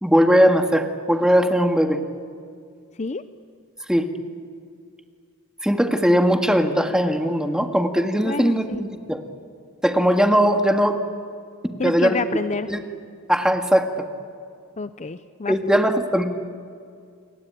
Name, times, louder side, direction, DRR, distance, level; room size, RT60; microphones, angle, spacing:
voice 1, 0.0-2.0 3.9-4.1 5.6-9.2 9.8-11.0 11.8-12.1 12.7-12.8 13.3-13.9 15.5-16.2, equal, 5° right, 5 dB, 1.9 m, -19 dB
voice 2, 8.2-8.8 11.8-12.7 14.8-15.8, left 4 dB, 35° left, 12 dB, 0.6 m, -28 dB
29.0 x 22.0 x 9.2 m, 2.3 s
head